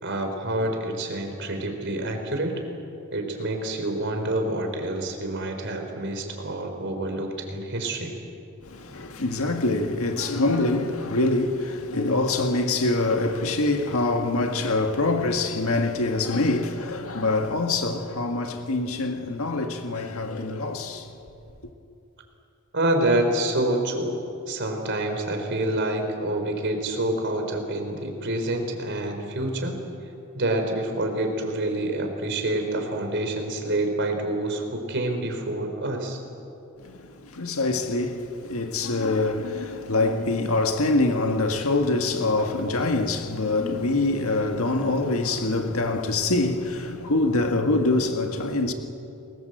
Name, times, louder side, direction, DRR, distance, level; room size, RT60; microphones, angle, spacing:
voice 1, 0.0-2.6 3.1-8.1 22.7-24.2 24.5-29.8 30.3-36.2, right 1 dB, 55° right, 4.1 m, -27 dB
voice 2, 8.6-21.1 36.8-48.7, left 2 dB, 75° left, 1.8 m, -25 dB
30.0 x 21.0 x 7.9 m
head